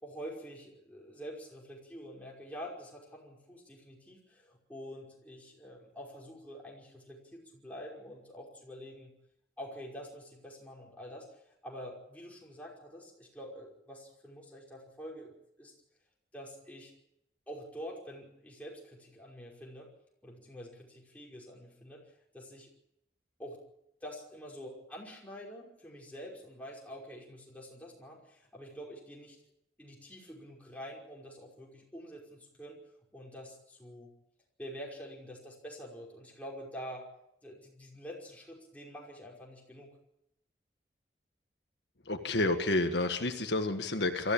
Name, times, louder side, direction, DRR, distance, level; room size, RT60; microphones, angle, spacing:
voice 1, 0.0-9.1 9.6-15.3 15.6-15.7 16.3-16.9 17.5-19.9 20.2-22.7 23.4-23.6 24.0-29.4 29.8-32.8 33.1-34.1 34.6-37.1 37.4-39.9, equal, 10° left, -2 dB, 5.5 m, -47 dB
voice 2, 42.0-44.3, left 2 dB, 80° left, 6 dB, 1.6 m, -30 dB
23.5 x 14.5 x 8.9 m, 0.81 s
head